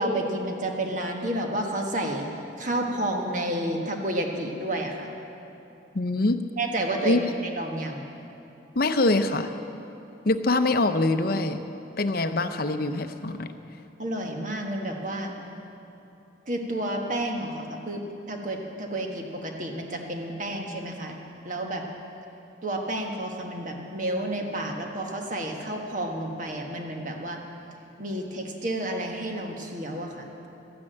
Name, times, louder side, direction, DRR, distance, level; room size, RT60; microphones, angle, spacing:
voice 1, 0.0-2.3 2.6-5.1 6.6-7.3 7.6-8.0 14.0-15.4 16.5-21.2 21.4-21.8 22.6-27.4 28.0-30.3, right 1 dB, 40° right, 2 dB, 1.5 m, -30 dB
voice 2, 5.9-6.4 7.0-7.3 8.7-9.5 10.2-11.6 12.0-13.5, left 2 dB, 50° left, 8 dB, 0.7 m, -24 dB
13.5 x 9.7 x 8.9 m, 3.0 s
head